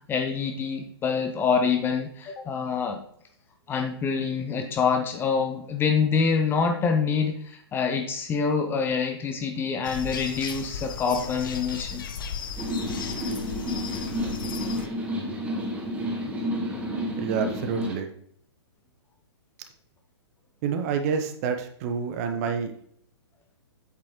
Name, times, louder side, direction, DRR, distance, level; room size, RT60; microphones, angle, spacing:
voice 1, 0.1-3.0 3.7-12.0, left 5 dB, 15° left, 5 dB, 0.6 m, -26 dB
sound 1, 9.8-14.9, left 6 dB, 50° left, 0.8 m, -35 dB
sound 2, 12.6-18.0, equal, 10° right, 1.2 m, -30 dB
voice 2, 17.2-18.1 20.6-22.7, right 6 dB, 35° right, 7 dB, 1.0 m, -28 dB
8.3 x 6.8 x 3.1 m, 0.63 s
figure-of-eight pair, 120°, 14 cm